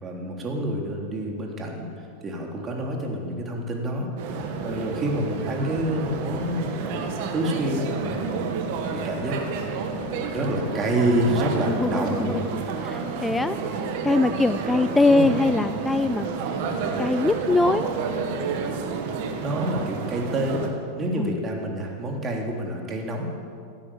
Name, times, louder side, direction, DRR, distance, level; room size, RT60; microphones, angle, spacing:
voice 1, 0.0-7.1 7.3-8.5 8.8-9.4 9.7-9.9 10.3-12.7 14.7-14.8 15.1-15.3 19.4-23.3, right 1 dB, 25° right, 1 dB, 3.4 m, -28 dB
sound 1, 4.2-20.7, right 5 dB, 60° right, 2.2 m, -30 dB
voice 2, 11.7-16.3 17.0-17.9 21.2-21.4, left 2 dB, 10° left, 12 dB, 0.4 m, -23 dB
16.5 x 9.9 x 8.9 m, 2.3 s
hypercardioid pair, 105°, 0 cm